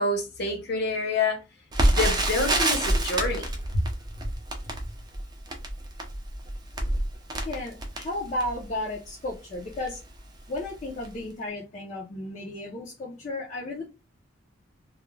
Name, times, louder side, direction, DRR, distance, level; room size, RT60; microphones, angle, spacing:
voice 1, 0.0-1.4 1.8-3.5 3.7-3.8, left 2 dB, 55° left, 0.8 m, -27 dB
Crackle, 1.7-8.7 9.3-9.4 9.7-9.9 10.5-10.8 11.0-11.1, right 1 dB, 20° right, 0.5 m, -27 dB
voice 2, 7.3-10.0 10.5-13.9, left 1 dB, 40° left, 0.5 m, -34 dB
2.3 x 2.1 x 3.0 m
head